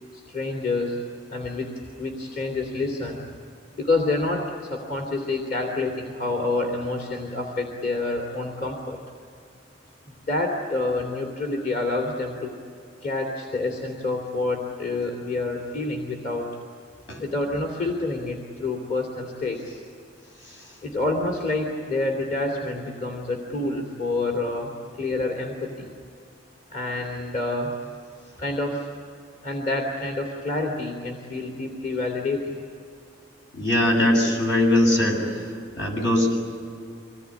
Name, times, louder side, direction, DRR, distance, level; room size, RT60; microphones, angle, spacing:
voice 1, 0.1-1.0 1.3-3.2 3.8-9.0 10.3-12.5 13.0-16.5 17.2-19.8 20.8-24.7 25.0-25.9 26.7-27.7 28.4-28.9 29.4-32.5, left 2 dB, 50° left, 0 dB, 2.9 m, -28 dB
voice 2, 33.5-35.2 35.8-36.4, left 1 dB, 75° left, 1 dB, 7.8 m, -20 dB
25.5 x 19.5 x 9.8 m, 2.4 s
head